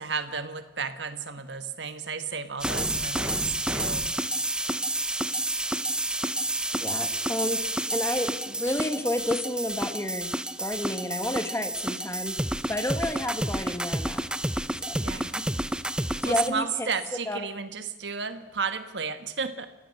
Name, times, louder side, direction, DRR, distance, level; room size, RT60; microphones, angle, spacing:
voice 1, 0.0-4.1 15.0-15.3 16.2-19.7, right 5 dB, 75° right, 9 dB, 1.3 m, -33 dB
sound 1, 2.6-16.5, right 1 dB, 5° right, 0.6 m, -30 dB
voice 2, 6.7-7.6 7.9-10.3 10.6-12.4 12.7-14.2 14.8-15.4 16.2-16.9 17.3-17.5, left 1 dB, 15° left, 7 dB, 1.7 m, -30 dB
29.0 x 15.5 x 6.6 m, 1.1 s
head